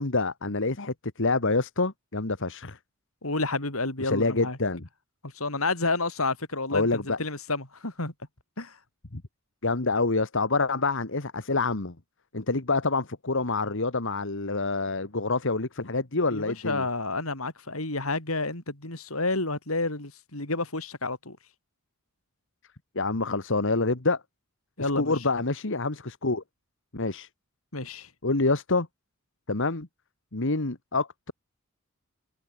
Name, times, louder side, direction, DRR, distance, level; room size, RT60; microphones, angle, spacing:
voice 1, 0.0-2.8 4.0-4.9 6.7-7.2 9.1-9.2 9.6-12.0 12.3-16.9 23.0-24.2 24.8-26.4 26.9-27.3 28.2-28.9 29.5-29.9 30.3-31.3, left 3 dB, 60° left, 1.8 m, -27 dB
voice 2, 3.2-4.6 5.2-8.1 8.6-8.8 16.3-21.4 24.8-25.1 27.7-28.1, left 3 dB, 80° left, 5.8 m, -30 dB
head